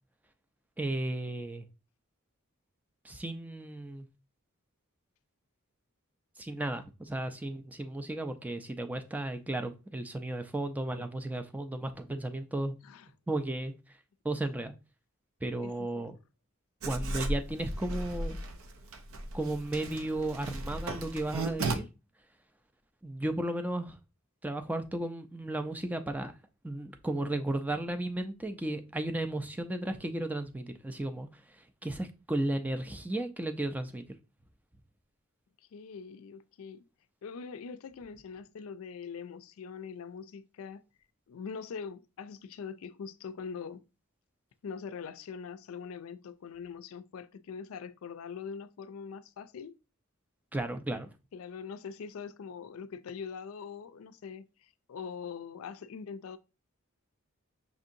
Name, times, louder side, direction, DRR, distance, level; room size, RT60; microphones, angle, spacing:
voice 1, 0.8-1.7 3.0-4.1 6.4-12.8 13.3-13.7 14.2-14.7 15.4-16.2 16.9-18.4 19.3-21.9 23.0-24.0 24.4-26.3 26.6-34.0 50.5-51.1, right 1 dB, 10° right, 0.4 m, -34 dB
voice 2, 15.6-16.2 35.7-36.8 37.2-40.8 41.3-43.9 44.6-49.8 51.3-56.4, left 6 dB, 75° left, 0.4 m, -43 dB
Writing, 16.8-21.7, right 2 dB, 75° right, 0.5 m, -36 dB
5.9 x 2.7 x 2.5 m
head